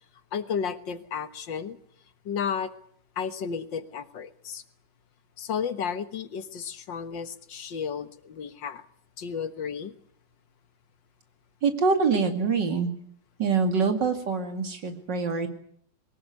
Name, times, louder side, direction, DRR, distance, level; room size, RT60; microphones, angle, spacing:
voice 1, 0.3-1.8 2.3-2.7 3.2-4.6 5.4-8.8 9.2-9.9, left 7 dB, 75° left, 11 dB, 2.0 m, -33 dB
voice 2, 11.6-12.9 13.4-15.5, right 5 dB, 65° right, 6 dB, 3.0 m, -25 dB
22.5 x 18.5 x 9.4 m, 0.66 s
omnidirectional pair, 2.0 m